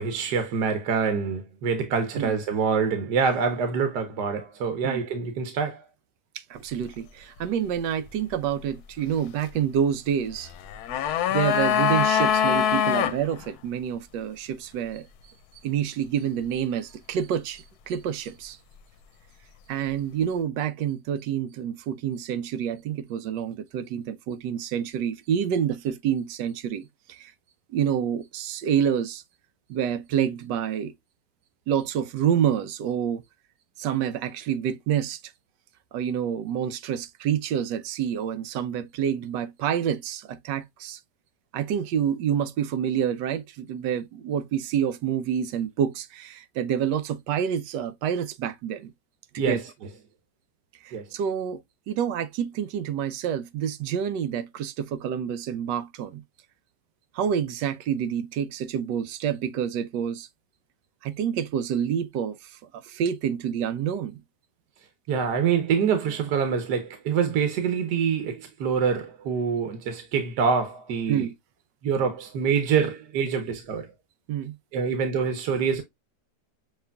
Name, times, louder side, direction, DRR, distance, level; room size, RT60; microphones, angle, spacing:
voice 1, 0.0-5.8 49.4-49.6 50.9-51.1 65.1-71.3 71.8-73.9 74.7-75.8, right 6 dB, 75° right, 1.4 m, -25 dB
voice 2, 6.3-10.5 11.3-15.1 15.6-18.6 19.7-27.3 27.7-29.2 29.7-30.9 31.7-33.2 33.8-35.2 35.9-41.0 41.5-48.9 49.3-49.6 50.8-51.6 51.9-56.2 57.1-60.3 61.0-64.2 71.1-71.3 74.3-74.5, right 8 dB, 90° right, 1.3 m, -28 dB
sound 1, 10.6-13.2 13.4-13.5, left 8 dB, 70° left, 1.1 m, -23 dB
6.7 x 3.2 x 2.2 m
omnidirectional pair, 1.8 m